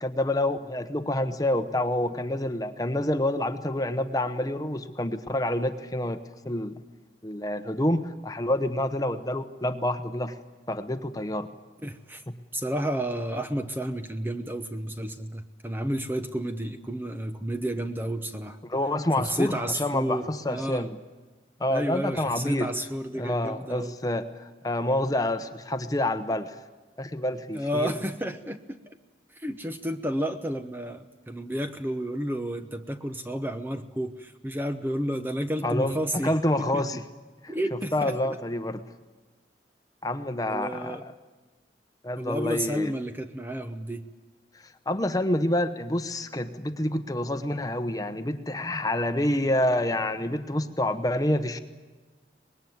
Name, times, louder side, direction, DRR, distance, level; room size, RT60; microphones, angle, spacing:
voice 1, 0.0-6.2 6.4-6.8 7.2-10.3 10.7-11.5 12.3-12.4 18.7-21.0 21.6-22.7 23.2-26.6 27.0-27.9 35.6-37.0 37.4-37.5 37.9-38.8 40.0-41.0 42.0-42.9 44.9-51.6, left 1 dB, 20° left, 8 dB, 0.9 m, -28 dB
voice 2, 11.8-12.2 12.5-18.6 19.2-20.9 21.7-23.9 27.5-28.8 29.4-36.3 36.6-36.8 37.5-38.1 40.5-41.0 42.2-44.1, equal, 10° right, 8 dB, 0.8 m, -31 dB
24.5 x 20.5 x 9.5 m, 1.3 s
head